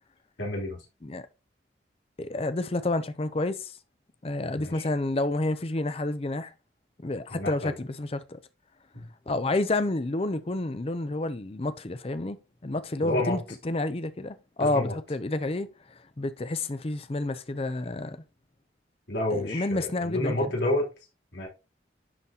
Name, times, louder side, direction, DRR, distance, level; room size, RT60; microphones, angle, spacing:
voice 1, 0.4-0.8 4.5-4.9 7.3-7.7 8.9-9.1 13.0-13.4 14.6-14.9 19.1-20.9 21.3-21.5, left 1 dB, 75° left, 3.4 m, -29 dB
voice 2, 2.2-3.7 4.2-6.5 7.0-8.4 9.3-12.4 12.6-15.7 16.2-18.2 19.3-20.3, left 2 dB, 30° left, 0.6 m, -29 dB
11.0 x 4.0 x 2.8 m
head